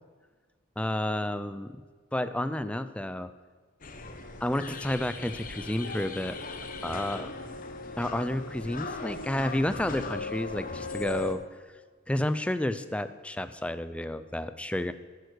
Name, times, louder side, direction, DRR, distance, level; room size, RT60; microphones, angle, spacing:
voice 1, 0.8-1.8 2.1-3.3 4.4-6.4 6.8-7.3 8.0-11.4 12.1-14.9, left 1 dB, 5° left, 11 dB, 0.4 m, -31 dB
sound 1, 3.8-11.3, left 3 dB, 40° left, 1.0 m, -38 dB
11.5 x 9.5 x 6.3 m, 1.5 s
head